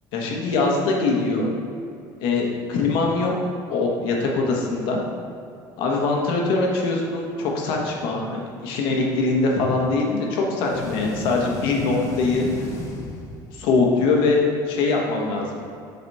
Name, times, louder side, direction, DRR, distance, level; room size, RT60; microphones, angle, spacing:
voice 1, 0.1-1.5 2.2-3.3 3.7-5.0 5.8-12.7 13.5-15.6, left 3 dB, 65° left, 0 dB, 1.3 m, -22 dB
sound 1, 10.6-13.8, left 2 dB, 35° left, 0.8 m, -33 dB
7.8 x 4.1 x 4.2 m, 2.5 s
cardioid pair, 175°, 9 cm